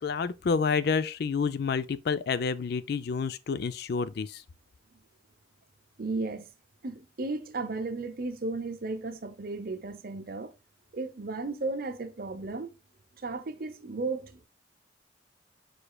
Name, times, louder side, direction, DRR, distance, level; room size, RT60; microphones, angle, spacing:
voice 1, 0.0-4.4, left 5 dB, 55° left, 0.4 m, -29 dB
voice 2, 6.0-6.5 6.8-10.5 10.9-12.7 13.2-14.4, right 3 dB, 50° right, 0.7 m, -34 dB
5.0 x 4.6 x 2.2 m
head